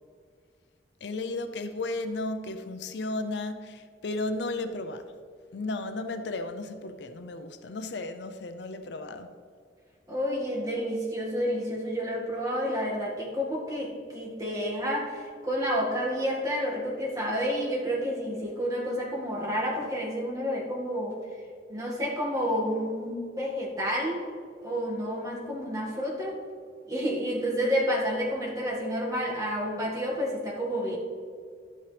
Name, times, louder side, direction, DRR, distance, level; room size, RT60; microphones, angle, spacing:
voice 1, 1.0-5.1 5.5-9.3, left 2 dB, 70° left, 9 dB, 0.6 m, -34 dB
voice 2, 10.1-21.2 21.7-24.3 24.6-26.4 26.9-31.0, equal, 20° right, -4 dB, 1.9 m, -30 dB
12.0 x 8.5 x 3.4 m, 2.1 s
head